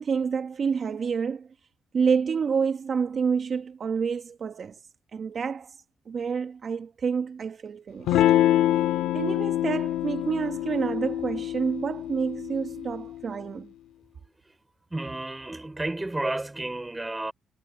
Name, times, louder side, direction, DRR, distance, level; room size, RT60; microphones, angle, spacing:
voice 1, 0.0-1.5 1.9-4.8 5.1-5.8 6.1-8.2 9.1-13.7, right 6 dB, 50° right, 1.1 m, -28 dB
Electric guitar / Strum, 8.1-13.2, left 13 dB, 90° left, 1.6 m, -25 dB
voice 2, 14.9-17.3, right 2 dB, 15° right, 5.1 m, -32 dB
cardioid pair, 90°, 0 cm